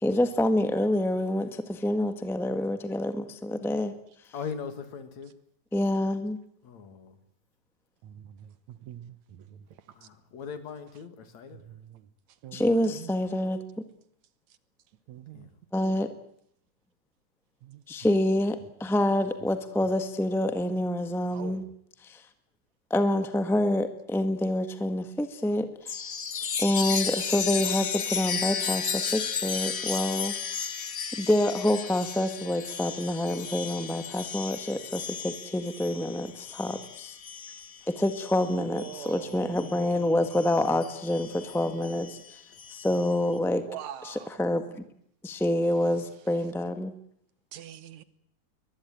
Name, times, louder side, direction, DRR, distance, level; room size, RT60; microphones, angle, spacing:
voice 1, 0.0-3.9 5.7-6.4 12.5-13.6 15.7-16.1 17.9-21.6 22.0-22.2 22.9-26.1 26.6-30.7 31.1-37.2 37.9-42.2 42.7-43.6 44.0-44.6 45.2-46.9, left 1 dB, ahead, 9 dB, 0.5 m, -27 dB
voice 2, 4.3-5.3 6.6-7.2 9.9-11.6 15.3-15.5 41.4-42.6, left 6 dB, 70° left, 10 dB, 3.4 m, -41 dB
voice 3, 8.0-9.6 11.5-12.1 12.4-13.1 15.1-15.5 15.8-16.0 17.6-17.8 21.3-21.7 38.5-40.1 43.6-44.3 47.5-48.0, right 10 dB, 75° right, 15 dB, 2.5 m, -44 dB
Chime, 25.9-39.8 40.3-43.1, left 6 dB, 45° left, 1.1 m, -34 dB
23.0 x 20.0 x 9.2 m, 0.70 s
omnidirectional pair, 3.4 m